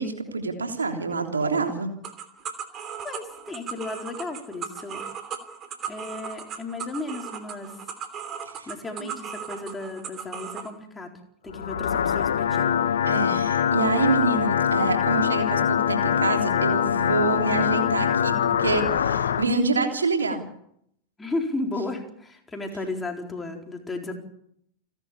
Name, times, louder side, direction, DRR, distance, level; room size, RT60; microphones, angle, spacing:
voice 1, 0.0-1.9 8.6-8.7 9.0-9.1 13.0-20.4, right 4 dB, 75° right, 4 dB, 3.3 m, -26 dB
sound 1, 2.0-10.7, right 7 dB, 30° right, 3.1 m, -37 dB
voice 2, 3.0-5.0 5.9-7.7 8.7-11.1 11.4-12.8 21.2-24.1, left 2 dB, 10° left, 2 dB, 4.4 m, -34 dB
sound 2, 11.5-19.5, left 8 dB, 65° left, 1.4 m, -23 dB
29.5 x 11.5 x 8.6 m, 0.74 s
figure-of-eight pair, 90°, 0 cm